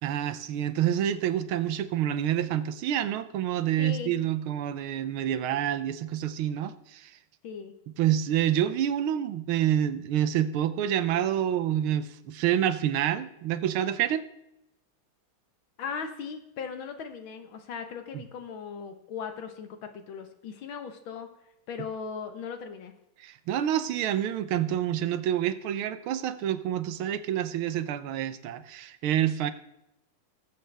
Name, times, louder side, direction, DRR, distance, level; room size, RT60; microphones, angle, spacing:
voice 1, 0.0-7.1 8.0-14.2 23.2-29.5, right 10 dB, 85° right, 11 dB, 1.6 m, -27 dB
voice 2, 3.8-4.1 7.4-7.7 15.8-21.3 21.7-22.9, left 6 dB, 70° left, 7 dB, 1.9 m, -38 dB
19.5 x 7.8 x 3.4 m, 0.85 s
omnidirectional pair, 2.3 m